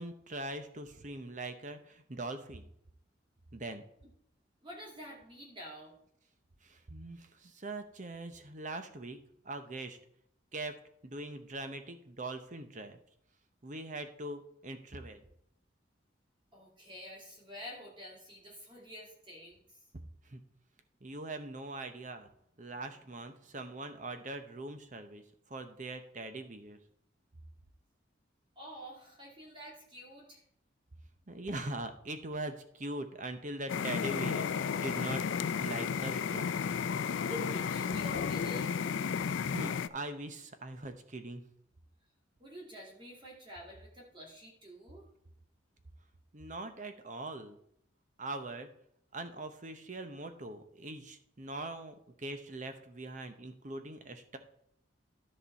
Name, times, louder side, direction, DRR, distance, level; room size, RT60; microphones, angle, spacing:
voice 1, 0.0-2.7 3.5-3.8 6.6-9.2 9.4-10.0 10.5-13.0 13.6-15.2 20.3-20.4 21.0-22.3 22.6-26.8 31.3-35.2 35.6-36.5 39.5-41.4 46.3-47.6 48.2-48.7 49.1-54.4, right 2 dB, 40° right, 8 dB, 0.9 m, -42 dB
voice 2, 4.6-5.9 16.5-19.8 28.6-30.4 37.2-38.8 42.4-45.0, equal, 25° right, -2 dB, 1.8 m, -48 dB
sound 1, 33.7-39.9, left 6 dB, 75° left, 0.4 m, -33 dB
13.0 x 5.3 x 4.1 m, 0.72 s
head